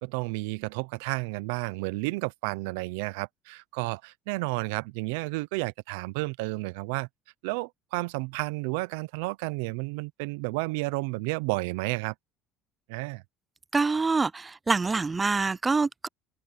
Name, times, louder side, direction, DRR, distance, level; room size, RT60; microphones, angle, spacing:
voice 1, 0.0-7.1 7.4-12.1 12.9-13.2, right 24 dB, 85° right, 0.6 m, -31 dB
voice 2, 13.7-16.1, right 4 dB, 20° right, 0.6 m, -25 dB
supercardioid pair, 80°, 0 cm